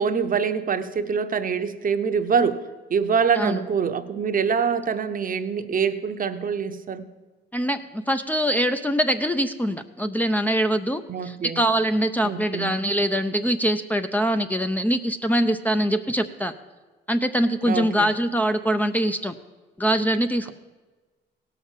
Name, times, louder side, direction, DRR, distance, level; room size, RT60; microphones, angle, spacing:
voice 1, 0.0-2.6 2.9-7.1 11.1-11.6 12.2-12.7 17.6-18.1, right 6 dB, 45° right, 9 dB, 0.9 m, -25 dB
voice 2, 7.5-16.5 17.1-19.4 19.8-20.5, equal, 10° left, 8 dB, 0.6 m, -23 dB
16.5 x 6.0 x 7.3 m, 1.3 s
cardioid pair, 90°, 20 cm